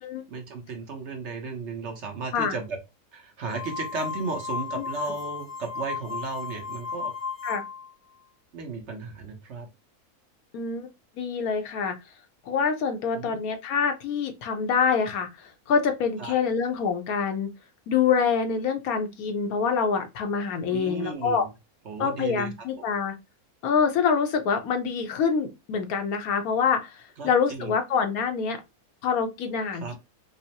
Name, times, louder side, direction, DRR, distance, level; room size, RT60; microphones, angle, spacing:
voice 1, 0.3-2.8 3.1-7.1 8.5-9.7 13.1-13.4 16.2-16.3 20.7-21.5 21.8-22.5 22.8-22.9 27.2-27.8 29.8-29.9, right 4 dB, 55° right, 1.1 m, -35 dB
sound 1, 3.5-7.9, left 5 dB, 75° right, 1.9 m, -34 dB
voice 2, 10.5-10.9 11.2-12.0 12.5-17.5 17.9-21.4 22.0-23.1 23.6-28.6 29.0-30.0, left 6 dB, 80° left, 1.2 m, -26 dB
5.3 x 2.1 x 2.8 m
omnidirectional pair, 1.5 m